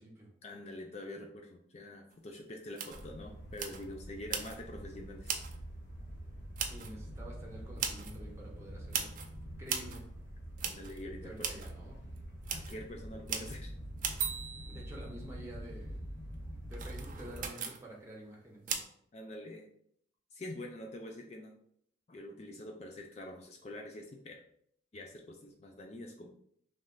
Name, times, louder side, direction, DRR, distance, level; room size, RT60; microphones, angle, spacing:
voice 1, 0.4-5.4 10.6-11.5 12.5-13.7 19.1-19.7 20.3-21.5 22.1-24.4 24.9-26.4, left 1 dB, 35° left, 2 dB, 0.4 m, -46 dB
sound 1, 2.1-2.2 2.7-3.1 3.5-3.9 4.3-4.6 5.2-5.6 6.6-6.9 7.8-8.2 8.9-9.3 9.7-10.0 10.6-11.0 11.4-11.7 12.2-12.3 12.4-12.8 13.3-13.6 14.0-15.3 16.7-17.8 18.7-18.8, right 7 dB, 45° right, 0.5 m, -38 dB
sound 2, 2.9-17.5, equal, 55° left, 1.2 m, -46 dB
voice 2, 6.6-9.1 9.6-10.0 11.2-12.0 14.7-16.0 16.7-18.8, right 1 dB, 15° right, -3 dB, 0.9 m, -49 dB
3.2 x 3.1 x 3.8 m, 0.68 s
head